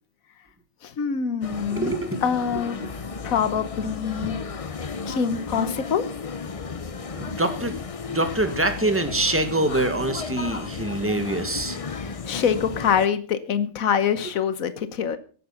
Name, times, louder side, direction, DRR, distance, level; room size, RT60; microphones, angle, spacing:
voice 1, 0.8-2.8 3.2-4.4 5.1-6.1 12.0-15.2, left 7 dB, 80° left, 13 dB, 1.5 m, -25 dB
sound 1, 1.4-13.1, left 5 dB, 35° left, 0.6 m, -34 dB
voice 2, 1.7-2.2 2.5-2.9 7.0-7.8 8.1-11.8, right 2 dB, 10° right, 8 dB, 1.7 m, -25 dB
17.0 x 9.3 x 5.8 m, 0.42 s
omnidirectional pair, 1.4 m